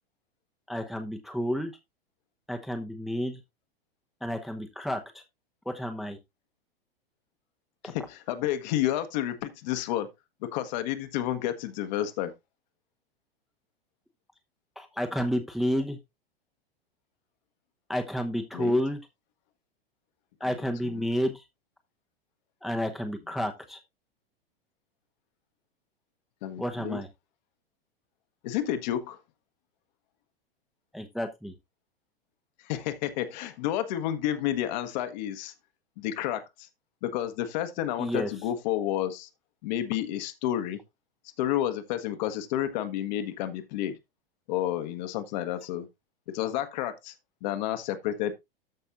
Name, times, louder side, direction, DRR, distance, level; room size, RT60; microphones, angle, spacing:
voice 1, 0.7-1.7 2.5-3.4 4.2-5.2 5.6-6.2 7.8-7.9 14.8-16.0 17.9-19.0 20.4-21.4 22.6-23.8 26.6-27.1 30.9-31.5 38.0-38.3, equal, ahead, 0.9 m, -30 dB
voice 2, 7.8-10.1 10.5-12.3 18.5-18.8 20.9-21.0 26.4-27.0 28.4-29.2 32.6-35.5 36.0-36.7 37.0-39.3 39.6-40.8 41.4-44.0 44.5-45.9 46.3-47.1 47.4-48.3, left 12 dB, 45° left, 1.3 m, -30 dB
13.5 x 5.6 x 2.5 m
figure-of-eight pair, 95°, 30 cm